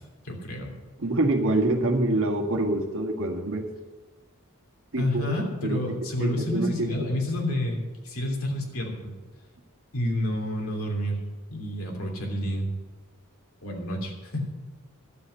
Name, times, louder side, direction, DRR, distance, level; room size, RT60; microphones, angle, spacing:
voice 1, 0.2-0.7 5.0-9.1 9.9-11.2 11.5-12.7 13.6-14.5, left 1 dB, 75° left, 1 dB, 3.1 m, -29 dB
voice 2, 1.0-3.7 4.9-5.3 5.6-5.9 6.2-6.9, right 2 dB, 65° right, 3 dB, 1.7 m, -26 dB
12.0 x 8.1 x 8.1 m, 1.3 s
head